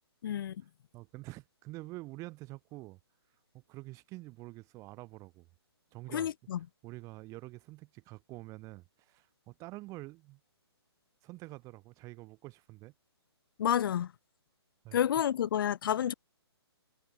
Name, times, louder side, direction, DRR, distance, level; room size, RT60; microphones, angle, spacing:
voice 1, 0.2-0.6 6.1-6.6 13.6-14.1 14.9-16.1, left 10 dB, 50° left, 1.0 m, -29 dB
voice 2, 0.9-3.0 3.5-5.5 5.9-6.3 6.8-10.4 11.2-12.9 14.8-15.0, right 20 dB, 25° right, 2.0 m, -47 dB
hypercardioid pair, 145°, 14 cm